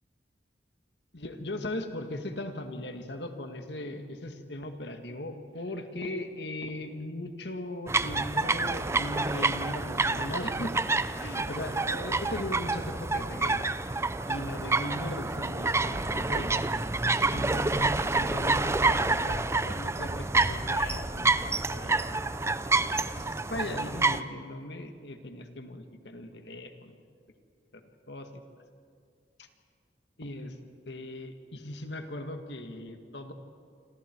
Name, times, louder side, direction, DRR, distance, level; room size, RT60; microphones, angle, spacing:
voice 1, 1.1-10.8 11.2-13.7 14.3-16.6 17.3-22.1 23.1-27.0 27.7-28.4 30.2-30.6 30.9-33.3, left 1 dB, 70° left, 6 dB, 2.0 m, -38 dB
sound 1, 7.9-24.2, right 3 dB, 15° right, 0.5 m, -28 dB
27.0 x 27.0 x 4.7 m, 2.2 s
head